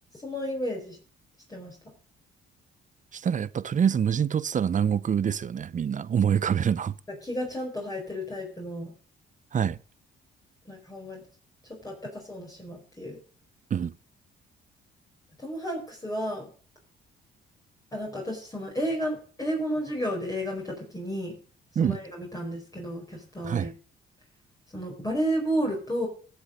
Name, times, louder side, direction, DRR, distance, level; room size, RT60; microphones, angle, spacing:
voice 1, 0.1-1.0 1.5-1.8 7.2-8.9 10.6-11.2 11.7-13.2 15.4-16.5 17.9-21.3 21.8-23.7 24.7-26.1, equal, 20° left, 4.9 m, -32 dB
voice 2, 3.1-6.9 9.5-9.8 13.7-13.9 21.8-22.0 23.4-23.7, right 8 dB, 40° right, 0.6 m, -25 dB
15.0 x 7.0 x 6.5 m
cardioid pair, 90°, 20 cm